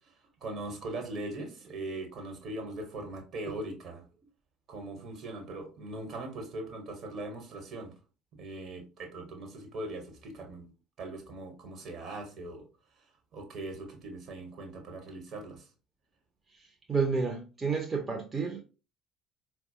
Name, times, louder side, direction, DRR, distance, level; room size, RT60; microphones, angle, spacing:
voice 1, 0.4-4.0 4.7-7.9 8.4-10.7 11.0-12.6 13.3-15.7, right 2 dB, 50° right, 1.3 m, -40 dB
voice 2, 16.5-18.6, right 4 dB, 25° right, 0.7 m, -31 dB
4.6 x 2.3 x 2.7 m
figure-of-eight pair, 55°, 0 cm